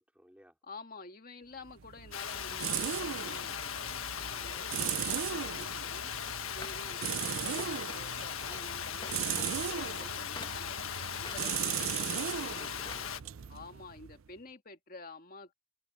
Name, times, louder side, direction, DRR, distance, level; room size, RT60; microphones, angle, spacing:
voice 1, 0.0-0.5 4.2-4.5 11.8-13.5, equal, 5° right, 3.4 m, -57 dB
voice 2, 0.6-6.1 6.5-12.2 13.5-15.5, left 3 dB, 45° left, 1.9 m, -50 dB
sound 1, 1.7-14.3, right 9 dB, 80° right, 0.5 m, -38 dB
Water, 2.1-13.2, left 8 dB, 90° left, 1.5 m, -39 dB
sound 2, 6.3-8.2 8.4-13.1 13.4-13.5, left 3 dB, 20° left, 1.9 m, -50 dB
head